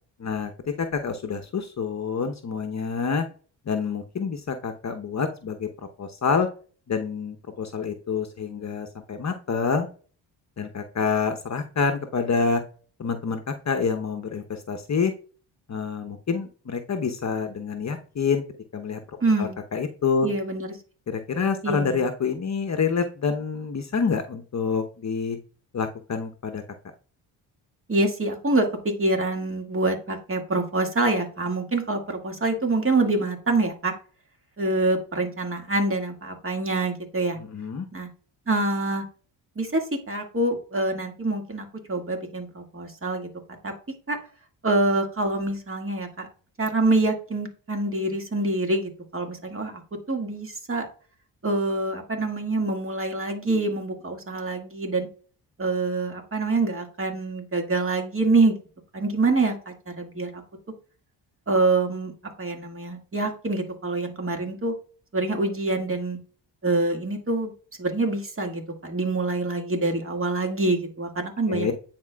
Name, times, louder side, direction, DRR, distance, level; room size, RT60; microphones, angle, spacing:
voice 1, 0.2-0.5 0.8-3.2 3.7-5.7 6.0-6.5 6.9-9.9 10.6-12.6 13.0-15.1 15.7-18.4 18.7-19.0 19.4-20.3 21.1-25.4 25.7-26.6 37.4-37.9 71.5-71.7, left 5 dB, 35° left, 6 dB, 0.9 m, -27 dB
voice 2, 19.2-19.6 20.2-20.7 21.6-22.1 27.9-33.9 34.6-37.4 37.9-38.1 38.5-39.0 39.6-43.3 43.6-43.7 44.1-44.2 44.6-46.3 46.6-49.8 50.1-50.9 51.4-55.1 55.6-58.6 58.9-60.4 61.5-62.1 62.4-64.8 65.1-66.2 66.6-67.5 67.8-71.7, right 2 dB, 30° right, 3 dB, 2.0 m, -25 dB
9.3 x 4.4 x 2.3 m, 0.39 s
supercardioid pair, 55°, 46 cm